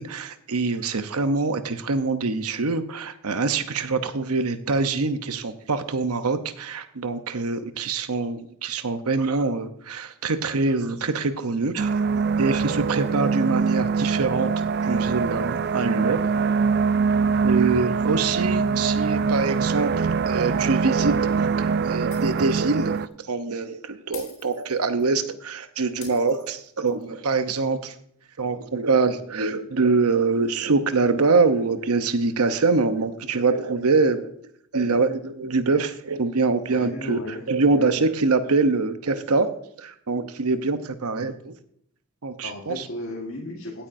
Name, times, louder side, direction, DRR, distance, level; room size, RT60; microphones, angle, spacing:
voice 1, 0.0-11.9 12.4-14.5 14.8-16.2 17.4-28.0 28.4-34.3 34.7-37.2 37.5-41.5 42.2-42.9, right 4 dB, 85° right, 10 dB, 0.8 m, -24 dB
sound 1, 11.8-23.1, right 5 dB, 45° right, 0.4 m, -23 dB
Shatter, 22.1-22.7 23.0-23.1 24.1-25.1 26.0-27.0, left 7 dB, 80° left, 3.7 m, -45 dB
voice 2, 36.7-37.9 42.4-43.9, left 1 dB, 65° left, -1 dB, 1.6 m, -35 dB
16.5 x 8.8 x 2.6 m, 0.69 s
head